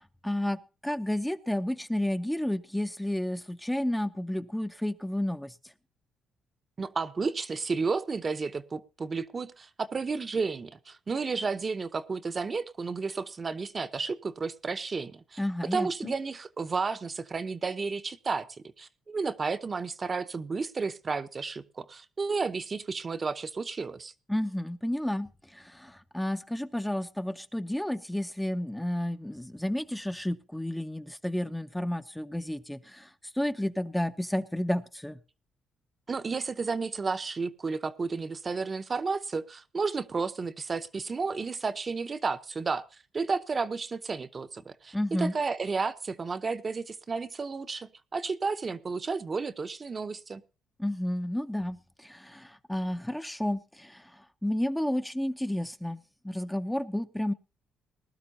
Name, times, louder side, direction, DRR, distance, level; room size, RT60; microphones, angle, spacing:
voice 1, 0.0-5.6 15.4-16.1 24.3-35.2 44.9-45.3 50.8-57.3, left 1 dB, 5° left, 8 dB, 0.7 m, -31 dB
voice 2, 6.8-15.4 15.7-18.5 18.8-24.1 36.1-50.4, right 4 dB, 35° right, 9 dB, 0.8 m, -32 dB
19.5 x 12.0 x 2.7 m, 0.31 s
cardioid pair, 90°, 0 cm